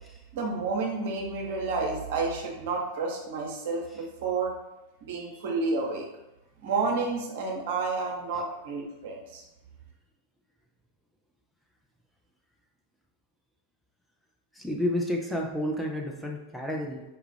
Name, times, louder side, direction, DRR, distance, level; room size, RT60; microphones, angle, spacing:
voice 1, 0.3-4.5 5.0-6.1 6.6-9.4, right 4 dB, 55° right, 0 dB, 0.8 m, -30 dB
voice 2, 14.5-17.0, left 1 dB, ahead, 0 dB, 0.5 m, -30 dB
4.5 x 2.4 x 3.2 m, 0.97 s
figure-of-eight pair, 90°, 0 cm